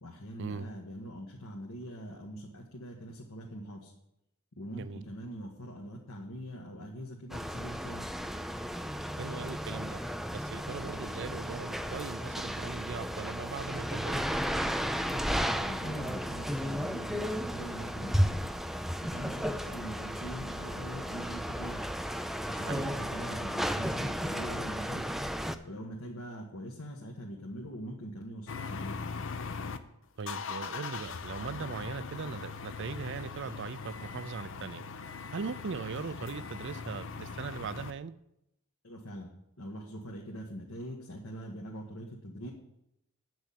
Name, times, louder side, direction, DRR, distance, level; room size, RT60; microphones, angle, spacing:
voice 1, 0.0-3.9 4.5-8.1 14.9-18.4 19.1-21.8 22.5-25.0 25.6-29.0 38.8-39.3 39.6-42.5, equal, 85° left, -1 dB, 1.5 m, -43 dB
sound 1, 7.3-25.5, equal, ahead, 0.4 m, -34 dB
voice 2, 9.2-10.0 10.3-14.3 22.7-22.9 30.2-34.8 35.3-38.1, right 5 dB, 55° right, 15 dB, 0.5 m, -39 dB
sound 2, 28.5-29.8 30.2-37.9, left 5 dB, 65° left, 0.7 m, -40 dB
9.0 x 6.3 x 8.4 m, 0.83 s
head